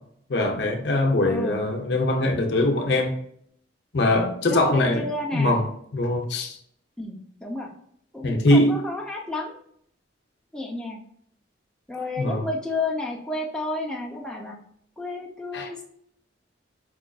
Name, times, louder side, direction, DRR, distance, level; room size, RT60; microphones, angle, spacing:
voice 1, 0.3-3.1 3.9-5.0 5.3-5.6 5.9-6.6 8.2-8.7 12.2-12.5 15.5-15.7, left 1 dB, 65° left, 3 dB, 0.6 m, -22 dB
voice 2, 1.3-1.6 4.4-5.6 7.0-7.7 8.1-9.6 10.5-11.0 11.9-14.6 15.0-15.8, left 2 dB, 5° left, -2 dB, 0.5 m, -31 dB
4.8 x 2.5 x 2.3 m, 0.66 s
head